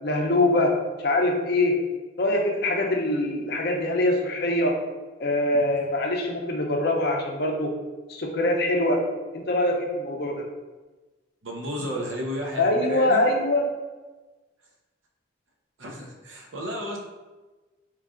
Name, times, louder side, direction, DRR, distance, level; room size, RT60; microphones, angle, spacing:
voice 1, 0.0-1.9 2.2-4.8 5.2-7.7 8.1-9.1 9.3-10.4 12.6-13.8, left 1 dB, 55° left, 1 dB, 0.5 m, -23 dB
voice 2, 11.4-13.2 15.8-17.0, equal, 90° right, 0 dB, 0.7 m, -33 dB
3.1 x 2.4 x 3.6 m, 1.2 s
head